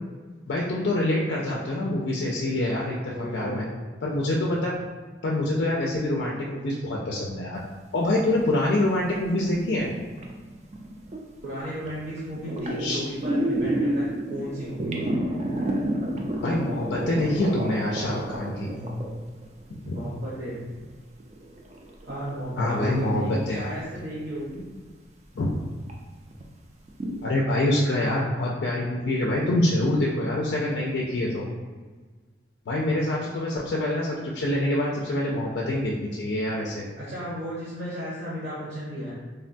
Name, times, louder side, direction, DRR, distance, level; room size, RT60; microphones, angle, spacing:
voice 1, 0.5-3.6 4.0-4.8 5.2-7.6 7.9-9.9 12.8-13.0 13.6-13.7 16.4-18.7 19.9-20.0 22.6-23.6 25.4-25.5 27.2-31.5 32.7-36.8, left 1 dB, 75° left, -2 dB, 0.4 m, -25 dB
voice 2, 3.0-3.7 11.4-15.0 18.2-18.3 18.7-19.1 19.7-20.6 22.0-24.7 37.0-39.1, equal, 60° right, -9 dB, 0.8 m, -34 dB
sound 1, 8.2-11.2 11.6-11.9 12.2-20.1 20.7-20.8 21.2-23.6 23.9-24.1 24.6-24.7 25.4-25.5 25.9-26.0 26.3-26.4 26.9-27.2, right 1 dB, 35° right, 0.3 m, -30 dB
3.4 x 2.2 x 2.5 m, 1.4 s
head